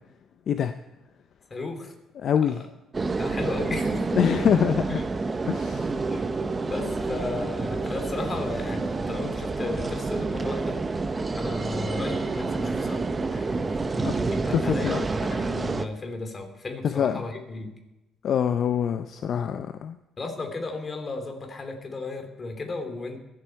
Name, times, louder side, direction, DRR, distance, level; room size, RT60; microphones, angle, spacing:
voice 1, 1.5-1.9 3.2-4.4 4.9-5.0 6.1-6.2 6.6-10.8 11.4-17.7 20.2-23.2, left 3 dB, 35° left, 4 dB, 2.8 m, -34 dB
voice 2, 2.2-2.7 4.2-5.0 5.5-5.9 14.0-14.1 14.5-15.1 16.8-17.2 18.2-20.0, left 8 dB, 60° left, 10 dB, 0.5 m, -24 dB
sound 1, 2.9-15.9, right 3 dB, 30° right, 0.8 m, -28 dB
22.5 x 7.7 x 4.5 m, 0.97 s
cardioid pair, 85°, 0 cm